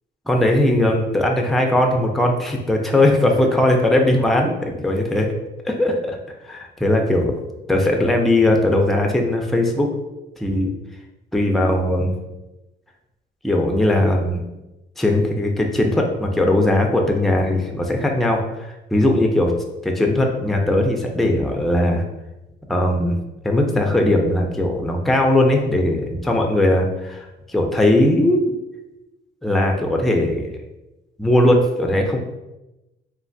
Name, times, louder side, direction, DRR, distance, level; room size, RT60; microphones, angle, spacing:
voice 1, 0.3-5.3 5.7-6.2 6.4-7.4 7.7-9.9 10.4-10.7 11.3-12.1 13.4-14.4 15.0-19.5 19.8-22.0 22.7-23.2 23.4-28.5 29.4-30.5 31.2-32.2, left 1 dB, ahead, 1 dB, 0.4 m, -19 dB
3.2 x 2.2 x 2.6 m, 0.99 s
cardioid pair, 90°, 20 cm